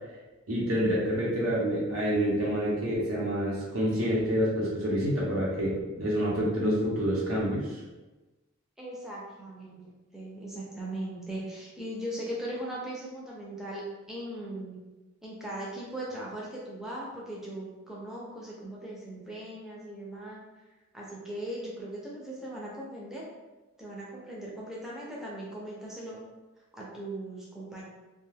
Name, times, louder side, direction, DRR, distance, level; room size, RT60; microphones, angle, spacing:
voice 1, 0.5-7.7, equal, 80° right, -5 dB, 0.9 m, -27 dB
voice 2, 8.8-14.8 15.2-20.4 20.9-23.2 23.8-26.2 26.7-27.8, right 1 dB, ahead, -6 dB, 0.4 m, -39 dB
2.4 x 2.2 x 3.2 m, 1.1 s
head